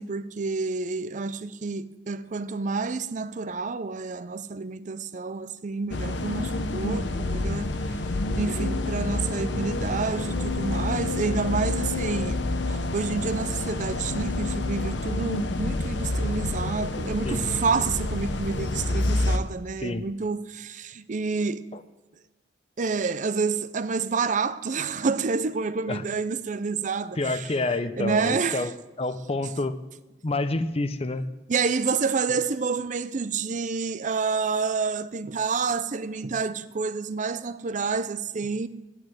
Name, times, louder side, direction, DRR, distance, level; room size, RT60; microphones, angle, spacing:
voice 1, 0.0-7.9 8.4-12.4 12.7-21.7 22.8-27.5 28.0-28.7 31.5-38.7, right 4 dB, 45° right, 0.5 m, -29 dB
sound 1, 5.9-19.4, left 2 dB, 90° left, 0.8 m, -28 dB
voice 2, 27.2-28.7 29.0-29.8 30.2-31.2, left 2 dB, 35° left, 0.7 m, -28 dB
9.5 x 9.1 x 7.9 m
head